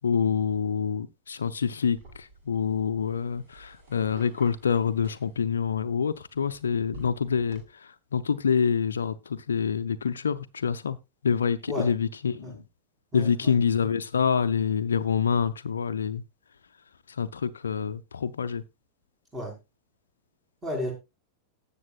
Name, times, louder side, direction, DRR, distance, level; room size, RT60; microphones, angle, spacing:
voice 1, 0.0-11.0 11.2-12.6 13.1-16.2 17.1-18.6, left 6 dB, 70° left, 0.5 m, -27 dB
sound 1, 2.0-7.6, right 1 dB, 50° right, 6.6 m, -51 dB
voice 2, 13.1-13.5 19.3-19.5 20.6-20.9, left 1 dB, 15° right, 4.6 m, -33 dB
18.0 x 6.9 x 2.4 m
figure-of-eight pair, 90°, 0 cm